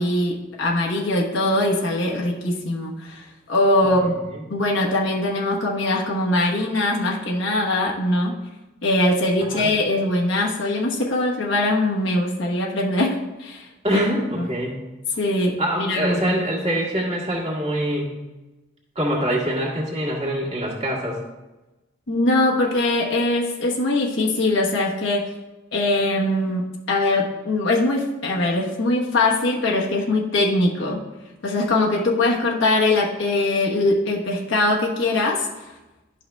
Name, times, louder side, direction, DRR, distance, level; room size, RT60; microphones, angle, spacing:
voice 1, 0.0-4.2 4.5-8.3 8.8-14.0 14.4-14.5 15.2-16.4 22.1-25.3 25.7-31.1 31.4-35.5, left 2 dB, 90° left, -2 dB, 1.1 m, -22 dB
voice 2, 13.8-14.8 15.6-18.2 18.9-21.2, equal, 30° right, -4 dB, 1.7 m, -24 dB
11.5 x 5.6 x 2.2 m, 1.1 s
head